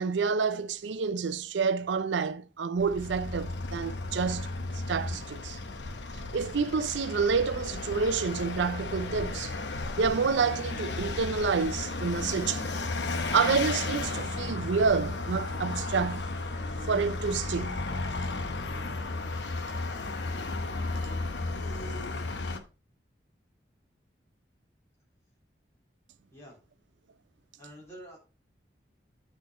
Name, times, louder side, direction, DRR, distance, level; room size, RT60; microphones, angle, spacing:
voice 1, 0.0-4.5 4.9-5.6 6.3-9.5 10.0-12.6 13.3-16.2 16.9-17.8, right 5 dB, 90° right, 0.5 m, -28 dB
Vehicle, 2.8-22.6, left 3 dB, 80° left, 0.9 m, -34 dB
voice 2, 27.6-28.2, right 1 dB, 15° left, 3.5 m, -48 dB
8.4 x 4.5 x 4.2 m
head